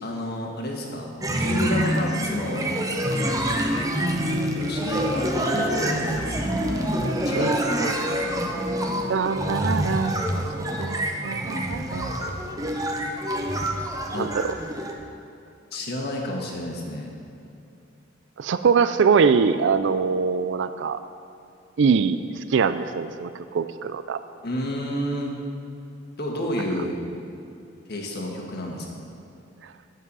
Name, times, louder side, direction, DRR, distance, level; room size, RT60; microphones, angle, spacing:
voice 1, 0.0-1.1 1.4-2.7 4.2-6.6 7.2-7.7 14.1-14.3 15.7-17.1 24.4-25.3 26.2-26.9 27.9-29.0, left 1 dB, 55° left, 0 dB, 1.6 m, -30 dB
sound 1, 1.2-14.9, equal, 20° right, 0.9 m, -26 dB
voice 2, 7.8-8.1 9.1-10.4 10.8-12.6 14.1-14.5 18.4-21.0 21.8-22.2 22.5-24.2, right 5 dB, 65° right, 12 dB, 0.4 m, -23 dB
9.9 x 8.2 x 5.5 m, 2.6 s
head